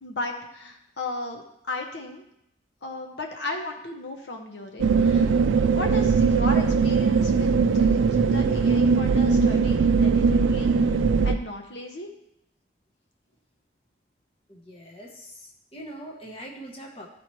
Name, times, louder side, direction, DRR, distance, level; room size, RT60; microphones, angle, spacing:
voice 1, 0.0-2.2 2.8-5.3 5.7-11.0 11.2-12.1, left 2 dB, 65° left, 3 dB, 0.8 m, -35 dB
sound 1, 4.8-11.3, right 5 dB, 85° right, 0.3 m, -20 dB
voice 2, 14.5-17.1, right 1 dB, 30° left, 0 dB, 0.9 m, -42 dB
12.5 x 4.3 x 3.1 m, 0.77 s
head